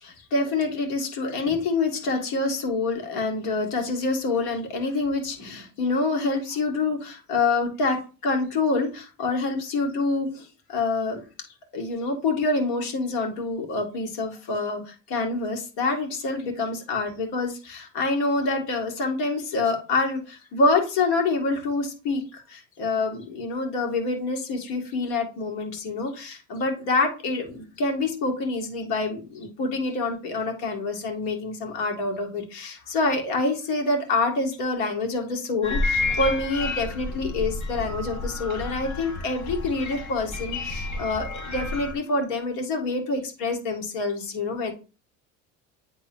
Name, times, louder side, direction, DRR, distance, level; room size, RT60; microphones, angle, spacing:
voice 1, 0.0-11.2 11.7-44.7, left 3 dB, 70° left, 2 dB, 2.1 m, -26 dB
sound 1, 35.6-41.9, left 3 dB, 50° left, 2.1 m, -30 dB
9.7 x 3.7 x 3.0 m, 0.34 s
supercardioid pair, 95°, 38 cm